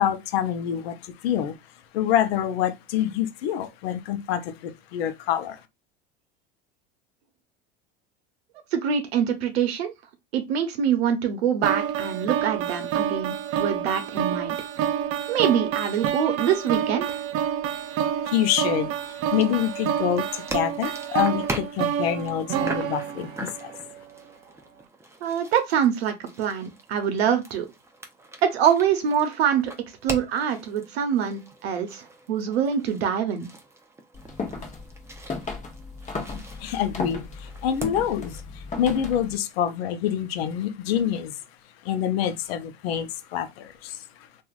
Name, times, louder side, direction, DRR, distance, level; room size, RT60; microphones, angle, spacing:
voice 1, 0.0-1.6 1.9-5.6 18.2-23.7 36.6-41.4 41.8-44.0, left 10 dB, 75° left, 0.6 m, -26 dB
voice 2, 8.7-9.9 10.3-14.6 15.3-17.2 25.2-27.7 28.4-29.7 30.0-33.5, right 8 dB, 85° right, 0.7 m, -24 dB
sound 1, 11.6-23.8, right 9 dB, 50° right, 0.5 m, -28 dB
sound 2, 19.2-38.4, right 2 dB, 10° right, 0.6 m, -41 dB
sound 3, 34.1-39.4, left 4 dB, 25° left, 0.8 m, -35 dB
3.0 x 2.4 x 2.4 m
hypercardioid pair, 90°, 31 cm